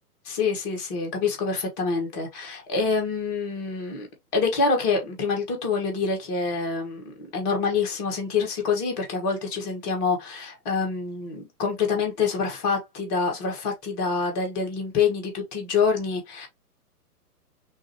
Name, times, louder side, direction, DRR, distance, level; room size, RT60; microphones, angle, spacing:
voice 1, 0.2-4.1 4.3-16.5, left 5 dB, 25° left, 1.5 m, -26 dB
6.2 x 2.7 x 2.9 m
figure-of-eight pair, 125°, 46 cm